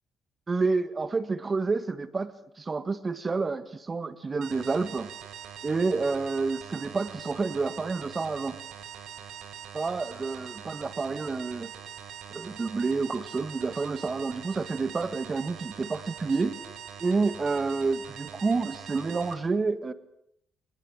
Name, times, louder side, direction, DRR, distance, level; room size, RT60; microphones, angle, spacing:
voice 1, 0.5-2.3 2.6-5.1 5.6-8.6 9.7-11.7 12.3-16.5 17.0-19.9, right 4 dB, 30° right, 13 dB, 1.7 m, -29 dB
sound 1, 4.4-19.3, right 9 dB, 80° right, 4.6 m, -43 dB
26.0 x 20.0 x 9.0 m, 0.73 s
cardioid pair, 90°, 0 cm